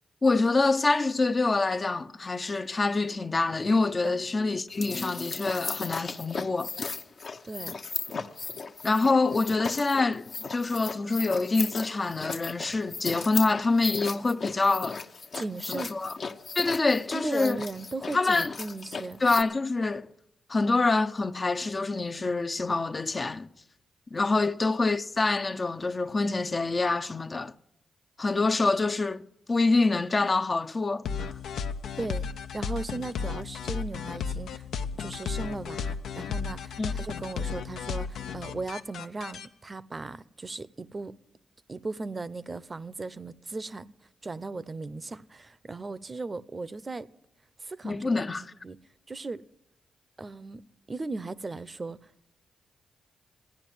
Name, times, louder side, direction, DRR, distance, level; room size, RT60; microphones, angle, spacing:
voice 1, 0.2-6.7 8.8-15.0 15.7-16.1 16.6-17.6 18.1-18.5 19.2-20.1 20.5-23.5 24.1-27.5 28.2-31.3 36.8-36.9 47.8-48.5, left 3 dB, 40° left, 0.6 m, -26 dB
sound 1, 4.7-19.4, left 4 dB, 55° left, 0.9 m, -37 dB
voice 2, 7.4-7.8 15.3-15.9 17.1-19.2 24.4-24.5 32.0-32.3 32.5-34.7 35.0-41.2 41.7-43.9 44.2-47.1 47.6-48.8 49.1-49.4 50.2-50.6 50.9-52.1, right 3 dB, 35° right, 0.6 m, -37 dB
sound 2, 31.0-39.5, left 6 dB, 80° left, 0.6 m, -34 dB
14.5 x 10.0 x 9.3 m
supercardioid pair, 50°, 0 cm